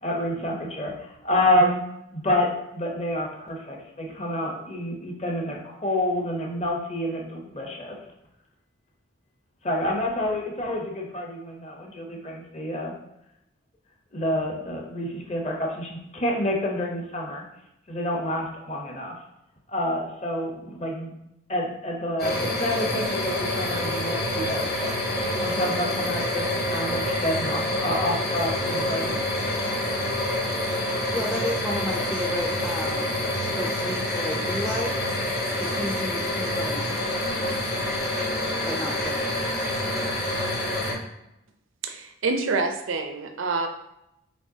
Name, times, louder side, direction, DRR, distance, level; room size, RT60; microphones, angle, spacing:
voice 1, 0.0-1.8 2.1-8.0 9.6-12.9 14.1-17.4 17.9-19.1 19.7-21.1 21.5-24.9 25.4-29.2, left 1 dB, 35° left, 0 dB, 0.8 m, -28 dB
sound 1, 22.2-40.9, left 1 dB, 50° left, 1.1 m, -27 dB
voice 2, 31.1-33.1 33.3-37.3 38.7-39.5, left 1 dB, 5° left, -2 dB, 0.4 m, -33 dB
voice 3, 41.8-43.7, right 3 dB, 85° right, 6 dB, 0.5 m, -27 dB
6.4 x 2.9 x 2.7 m, 0.85 s
head